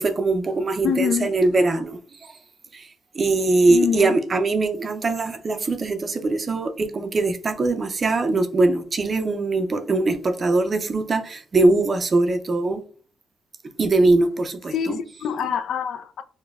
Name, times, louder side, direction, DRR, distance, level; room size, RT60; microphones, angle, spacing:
voice 1, 0.0-2.3 2.7-2.8 3.1-12.8 13.8-15.0, right 2 dB, 40° right, 0.5 m, -21 dB
voice 2, 0.8-1.3 3.7-4.2 14.7-16.2, left 8 dB, 70° left, 0.3 m, -25 dB
5.0 x 2.1 x 2.3 m
cardioid pair, 85°, 0 cm